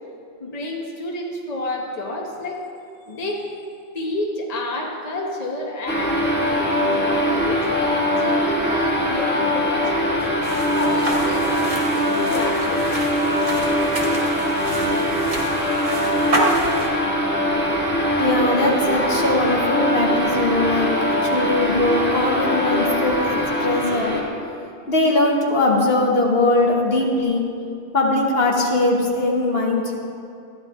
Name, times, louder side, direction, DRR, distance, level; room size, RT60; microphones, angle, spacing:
voice 1, 0.4-2.7 3.1-3.5 3.9-10.2 10.7-13.0, left 1 dB, 35° left, -1 dB, 1.1 m, -30 dB
sound 1, 5.9-24.2, equal, 10° left, 1.8 m, -22 dB
sound 2, 10.4-16.9, right 1 dB, 75° right, 2.0 m, -29 dB
voice 2, 18.2-24.1 24.9-27.4 27.9-30.0, left 2 dB, 60° left, -1 dB, 1.5 m, -20 dB
13.5 x 10.5 x 3.6 m, 2.6 s
omnidirectional pair, 1.2 m